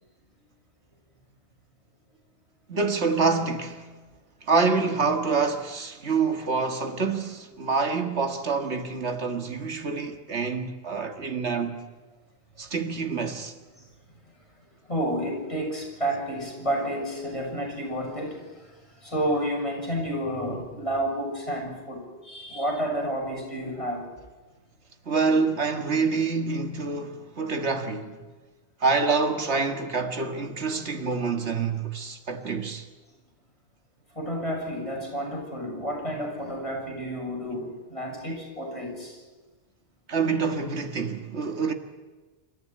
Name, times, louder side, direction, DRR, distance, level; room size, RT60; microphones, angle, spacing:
voice 1, 2.7-3.9 4.4-11.8 12.6-13.5 25.1-28.2 28.8-32.9 40.1-41.7, right 4 dB, 75° right, 2.0 m, -26 dB
voice 2, 14.9-24.1 34.1-39.2, equal, 30° left, 6.8 m, -30 dB
27.0 x 14.0 x 9.3 m
omnidirectional pair, 1.2 m